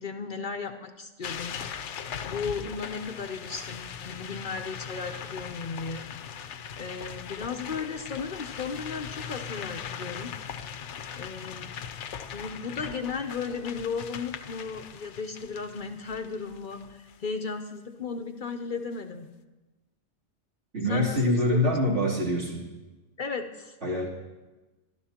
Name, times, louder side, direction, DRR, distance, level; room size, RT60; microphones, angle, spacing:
voice 1, 0.0-1.6 2.2-6.1 6.4-10.3 11.2-11.7 12.3-19.3 20.9-21.7 23.2-23.8, left 5 dB, 50° left, 5 dB, 0.8 m, -35 dB
sound 1, 1.2-17.2, left 8 dB, 75° left, 1.0 m, -40 dB
voice 2, 20.7-22.6 23.8-24.1, left 1 dB, 75° right, -6 dB, 3.4 m, -25 dB
25.0 x 11.5 x 2.8 m, 1.2 s
omnidirectional pair, 1.2 m